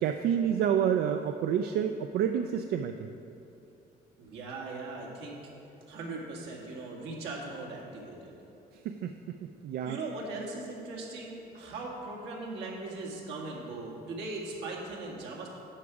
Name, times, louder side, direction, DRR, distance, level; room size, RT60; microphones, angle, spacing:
voice 1, 0.0-2.9 8.8-10.0, right 8 dB, 65° right, 7 dB, 0.4 m, -29 dB
voice 2, 4.2-5.4 5.9-8.3 9.9-15.5, right 3 dB, 90° right, -2 dB, 2.0 m, -39 dB
10.0 x 6.9 x 4.8 m, 2.8 s
cardioid pair, 110°, 17 cm